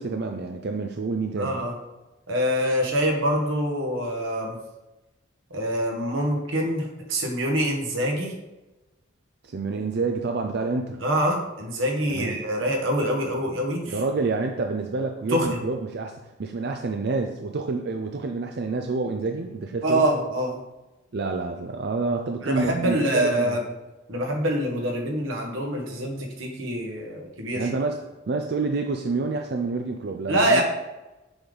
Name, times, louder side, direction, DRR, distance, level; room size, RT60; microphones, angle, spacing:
voice 1, 0.0-1.6 9.4-11.0 12.1-12.4 13.9-20.0 21.1-23.0 23.2-23.6 27.5-30.6, right 3 dB, 55° right, 4 dB, 0.5 m, -28 dB
voice 2, 1.4-1.7 2.3-4.6 5.5-8.3 11.0-14.0 15.3-15.6 19.8-20.6 22.4-23.6 24.1-27.7 30.3-30.6, equal, 90° right, 1 dB, 1.5 m, -25 dB
6.9 x 5.4 x 3.9 m, 1.0 s
head